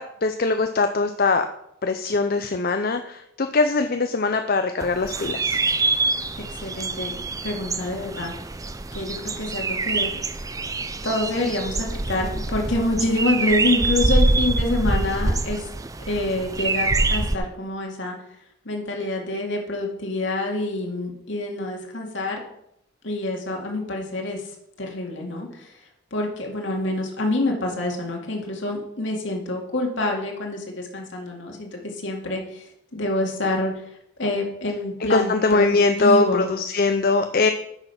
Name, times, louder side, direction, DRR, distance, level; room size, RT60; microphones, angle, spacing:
voice 1, 0.0-1.5 1.8-5.6 35.0-37.5, left 3 dB, 45° left, 7 dB, 0.5 m, -21 dB
sound 1, 4.8-17.4, right 3 dB, 15° right, 0.4 m, -25 dB
voice 2, 6.3-7.2 7.4-8.3 8.9-10.1 11.0-15.6 16.1-18.2 18.6-22.4 23.0-24.5 24.8-25.7 26.1-33.7 34.2-36.5, left 2 dB, 65° left, 1 dB, 2.3 m, -27 dB
9.8 x 6.6 x 5.7 m, 0.76 s
head